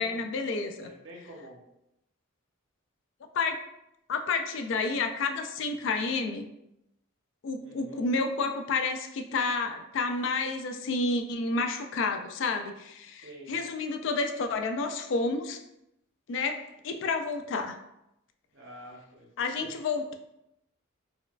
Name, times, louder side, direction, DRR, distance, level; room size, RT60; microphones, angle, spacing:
voice 1, 0.0-0.9 3.3-3.6 4.1-6.5 7.4-15.6 16.3-17.8 19.4-20.1, left 3 dB, 60° left, 6 dB, 0.3 m, -30 dB
voice 2, 0.8-1.6 7.6-8.0 13.2-13.6 18.5-19.3 19.6-19.7, equal, 60° right, -1 dB, 0.8 m, -47 dB
4.3 x 2.3 x 2.3 m, 0.84 s
head